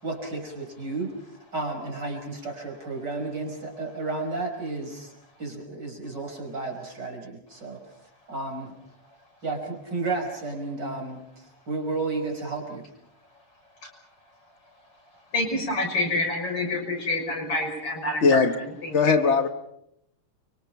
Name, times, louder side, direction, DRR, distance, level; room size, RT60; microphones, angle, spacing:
voice 1, 0.0-5.1 5.4-7.8 8.3-8.7 9.4-12.8, right 3 dB, 35° right, 1 dB, 5.7 m, -32 dB
voice 2, 15.3-19.2, left 2 dB, 45° left, 2 dB, 6.9 m, -28 dB
voice 3, 18.2-18.5 18.9-19.5, left 4 dB, 90° left, 9 dB, 0.6 m, -19 dB
30.0 x 24.5 x 5.8 m, 0.74 s
omnidirectional pair, 3.5 m